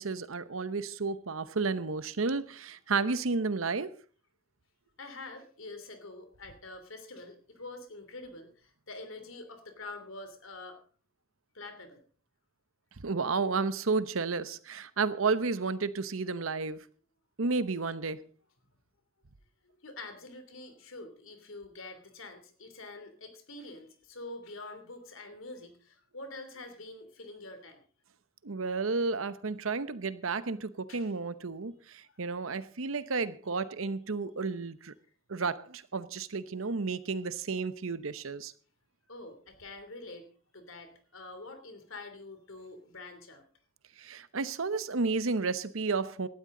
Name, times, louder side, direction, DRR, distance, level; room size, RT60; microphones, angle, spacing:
voice 1, 0.0-3.9 13.0-16.8 17.4-18.2 28.4-34.9 35.3-38.5 44.0-46.3, right 4 dB, 75° right, 0.9 m, -32 dB
voice 2, 5.0-10.8 11.5-12.0 19.6-27.8 30.9-31.1 32.0-32.2 39.1-43.4, left 2 dB, 70° left, 3.0 m, -46 dB
18.0 x 12.5 x 3.9 m
head